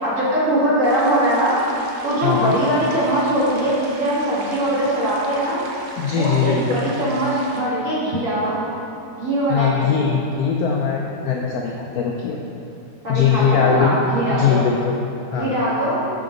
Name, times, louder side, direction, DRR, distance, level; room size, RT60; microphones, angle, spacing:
voice 1, 0.0-1.6 2.0-5.6 6.1-8.6 9.2-9.9 13.0-14.7 15.3-16.0, right 1 dB, 45° right, -9 dB, 2.4 m, -21 dB
sound 1, 0.8-7.6, right 2 dB, 85° right, 1.6 m, -37 dB
voice 2, 2.2-2.6 6.0-6.8 9.5-12.4 13.1-14.0 14.3-15.0 15.3-15.5, left 6 dB, 70° left, 0 dB, 0.9 m, -20 dB
7.1 x 6.7 x 3.9 m, 2.8 s
omnidirectional pair, 2.0 m